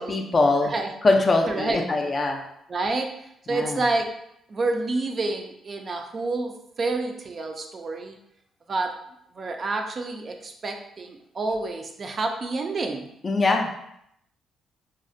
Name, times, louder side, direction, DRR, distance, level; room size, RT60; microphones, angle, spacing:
voice 1, 0.0-0.7 1.0-2.4 3.5-3.8 13.2-13.7, left 3 dB, 35° left, 3 dB, 0.3 m, -22 dB
voice 2, 1.5-1.8 2.7-3.1 3.5-4.1 4.5-8.2 8.7-9.0 9.3-13.0, right 3 dB, 40° right, 4 dB, 0.3 m, -28 dB
2.4 x 2.1 x 2.5 m, 0.76 s
cardioid pair, 90°, 0 cm